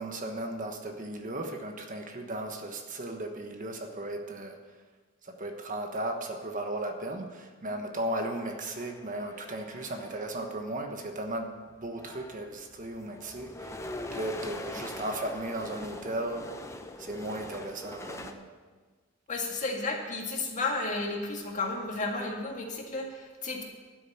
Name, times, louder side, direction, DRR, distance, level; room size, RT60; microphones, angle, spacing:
voice 1, 0.0-4.6 5.2-13.8 14.1-16.5 17.0-18.5, right 1 dB, 40° right, 4 dB, 1.2 m, -36 dB
sound 1, 8.3-10.5 11.4-11.5 11.8-18.3, left 2 dB, 15° left, 0.7 m, -43 dB
voice 2, 19.3-23.6, left 3 dB, 35° left, 1 dB, 2.0 m, -33 dB
12.0 x 6.9 x 8.6 m, 1.4 s
head